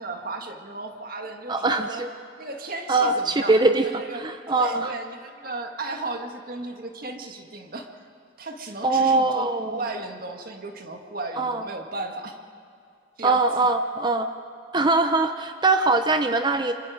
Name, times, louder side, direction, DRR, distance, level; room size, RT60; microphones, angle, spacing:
voice 1, 0.0-2.1 2.4-7.9 8.4-12.4 13.2-13.7, right 2 dB, 45° right, 4 dB, 1.8 m, -35 dB
voice 2, 1.5-2.1 2.9-4.9 8.8-9.7 11.4-11.6 13.2-14.3 14.7-16.7, right 3 dB, 20° right, 8 dB, 0.6 m, -22 dB
26.5 x 24.5 x 5.0 m, 2.3 s
head